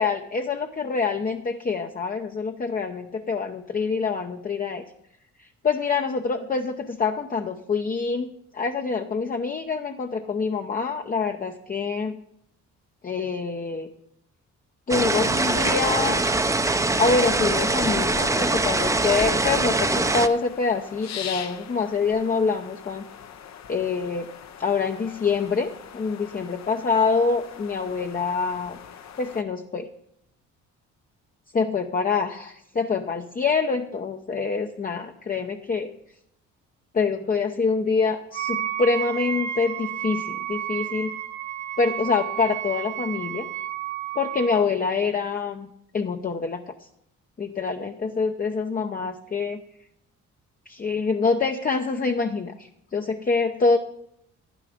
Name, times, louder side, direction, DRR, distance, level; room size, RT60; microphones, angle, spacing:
voice 1, 0.0-4.8 5.4-8.3 8.5-12.2 13.0-13.9 14.9-16.2 17.0-23.0 23.7-24.3 24.6-28.8 29.2-29.9 31.5-35.9 36.9-41.2 41.8-43.5 44.2-45.7 45.9-46.7 47.4-49.6 50.7-53.8, left 4 dB, 30° left, 4 dB, 0.7 m, -25 dB
sound 1, 14.9-20.3, right 2 dB, 10° right, 0.7 m, -23 dB
sound 2, 20.1-29.4, left 8 dB, 65° left, 0.9 m, -42 dB
Wind instrument woodwind instrument, 38.3-44.7, right 11 dB, 70° right, 1.2 m, -31 dB
11.0 x 10.0 x 5.1 m, 0.75 s
cardioid pair, 90°, 30 cm